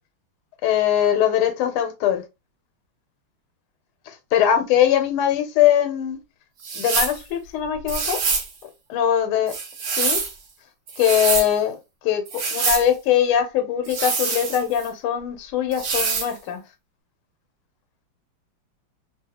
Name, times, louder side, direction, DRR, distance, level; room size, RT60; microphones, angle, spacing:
voice 1, 0.6-2.2 4.1-6.2 6.7-8.2 8.9-9.5 9.9-10.2 11.0-11.8 12.0-12.2 12.5-16.6, left 10 dB, 85° left, 1.6 m, -21 dB
sound 1, 6.6-7.2 7.9-8.5 9.5-10.3 10.9-11.5 12.3-12.9 13.8-14.9 15.7-16.3, right 5 dB, 60° right, 1.1 m, -25 dB
3.4 x 2.3 x 2.8 m
omnidirectional pair, 2.3 m